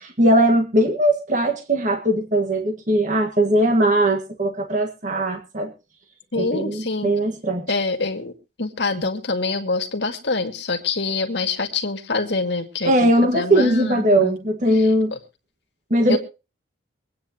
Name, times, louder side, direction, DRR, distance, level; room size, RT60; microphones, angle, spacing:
voice 1, 0.0-5.7 6.4-7.7 12.8-15.1 15.9-16.2, right 1 dB, 40° right, 4 dB, 1.7 m, -19 dB
voice 2, 6.3-7.1 7.7-14.4 14.7-15.2 16.1-16.2, left 3 dB, 65° left, 4 dB, 2.1 m, -26 dB
24.0 x 9.4 x 2.9 m, 0.30 s
head